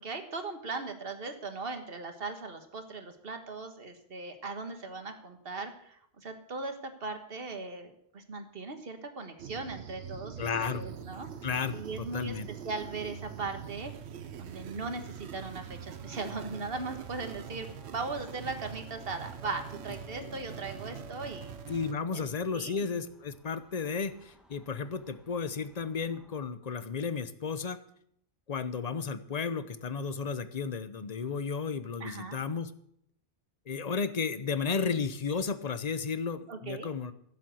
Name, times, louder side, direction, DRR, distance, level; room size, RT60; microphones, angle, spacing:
voice 1, 0.0-11.3 11.7-12.4 12.6-13.9 14.4-21.5 22.1-22.3 22.5-22.8 32.0-32.4 36.5-36.9, right 3 dB, 65° right, 7 dB, 1.7 m, -39 dB
sound 1, 9.4-21.9, right 8 dB, 90° right, 1.1 m, -44 dB
voice 2, 10.4-10.8 11.4-12.5 21.7-27.8 28.5-32.7 33.7-37.1, left 5 dB, 40° left, 12 dB, 0.9 m, -33 dB
sound 2, 16.0-26.5, left 3 dB, ahead, 1.3 m, -56 dB
15.5 x 7.6 x 7.8 m, 0.70 s
omnidirectional pair, 1.1 m